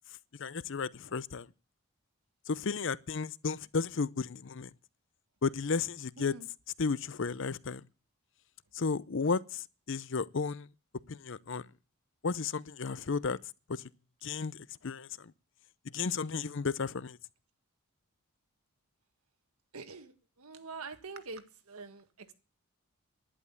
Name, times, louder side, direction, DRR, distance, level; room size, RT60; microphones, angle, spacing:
voice 1, 0.4-1.5 2.5-4.7 5.4-6.4 6.8-7.8 8.7-10.7 11.1-11.7 12.2-13.4 13.7-13.8 14.2-15.3 15.8-17.2, left 4 dB, 60° left, 0.6 m, -33 dB
voice 2, 19.7-20.1 20.4-22.3, right 4 dB, 90° right, 1.7 m, -45 dB
11.5 x 11.0 x 7.0 m
head